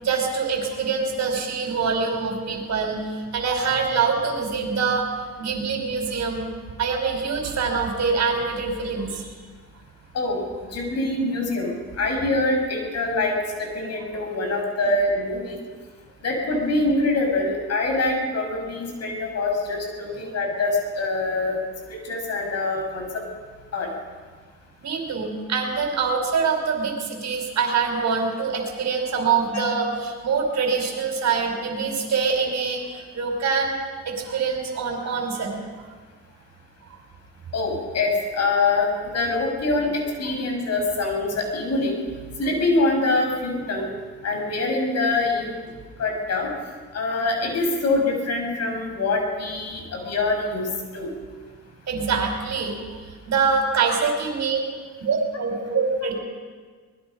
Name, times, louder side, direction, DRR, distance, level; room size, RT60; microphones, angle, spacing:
voice 1, 0.0-5.1 5.4-6.5 6.8-9.3 20.2-20.3 24.8-33.7 34.0-35.7 51.9-54.7 55.0-56.2, right 5 dB, 65° right, 3 dB, 5.0 m, -25 dB
voice 2, 10.7-15.6 16.2-21.6 22.1-23.2 23.7-23.9 37.5-42.0 42.4-43.9 44.2-45.6 46.0-46.5 46.9-50.7 50.9-51.1 55.6-55.7, left 2 dB, 55° left, 2 dB, 6.3 m, -24 dB
24.5 x 20.5 x 5.3 m, 1.5 s
cardioid pair, 90°, 30 cm